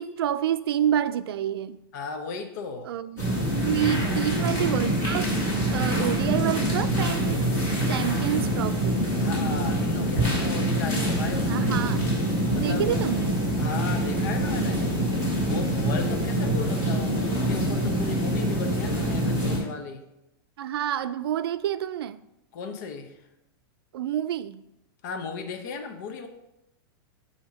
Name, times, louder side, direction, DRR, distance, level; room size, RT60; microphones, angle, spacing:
voice 1, 0.0-1.8 2.9-3.4 3.6-5.3 5.7-7.4 7.8-9.1 11.5-12.1 12.5-13.4 20.6-22.2 23.9-24.6, right 10 dB, 80° right, 0.4 m, -28 dB
voice 2, 1.9-2.9 3.8-4.2 9.2-11.7 12.5-13.0 13.6-14.9 15.4-20.0 22.5-23.2 25.0-26.3, left 5 dB, 45° left, 0.8 m, -36 dB
sound 1, 3.2-19.6, right 1 dB, 20° left, 2.2 m, -25 dB
7.6 x 2.9 x 5.8 m
supercardioid pair, 165°, 13 cm